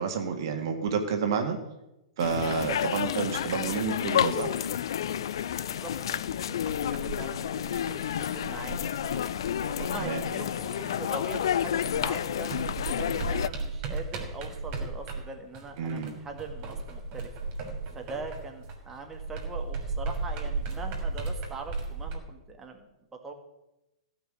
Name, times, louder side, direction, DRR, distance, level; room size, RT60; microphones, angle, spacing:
voice 1, 0.0-1.6 2.2-4.5 10.0-10.2 15.8-16.1, right 6 dB, 50° right, 4 dB, 1.8 m, -29 dB
sound 1, 2.2-13.5, left 10 dB, 55° left, 0.5 m, -30 dB
voice 2, 5.6-9.3 9.8-17.3 18.0-23.3, right 3 dB, 15° right, 3 dB, 1.9 m, -42 dB
sound 2, 6.7-11.6 11.8-22.2, right 3 dB, 35° right, 3.5 m, -36 dB
16.0 x 5.9 x 9.0 m, 0.94 s
figure-of-eight pair, 105°, 3 cm